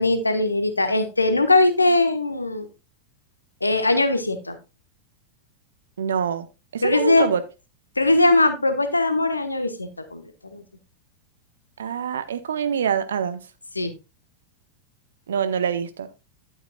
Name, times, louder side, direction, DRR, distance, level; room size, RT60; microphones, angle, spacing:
voice 1, 0.0-2.7 3.6-4.6 6.8-7.3 8.0-10.6 13.7-13.9, left 2 dB, 80° left, 1.2 m, -20 dB
voice 2, 6.0-6.5 6.7-7.4 11.8-13.4 15.3-16.1, right 7 dB, 65° right, 0.9 m, -25 dB
11.5 x 8.8 x 2.3 m
figure-of-eight pair, 90°, 0 cm